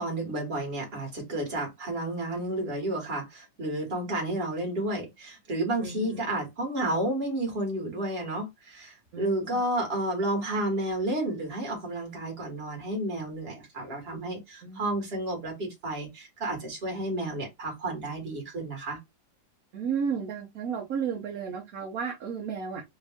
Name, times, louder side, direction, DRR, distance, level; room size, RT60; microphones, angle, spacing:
voice 1, 0.0-19.0, right 1 dB, 35° right, 1.5 m, -31 dB
voice 2, 5.8-6.3 9.1-9.6 14.6-14.8 19.7-22.8, right 6 dB, 60° right, 1.0 m, -33 dB
3.5 x 2.5 x 3.4 m
omnidirectional pair, 2.0 m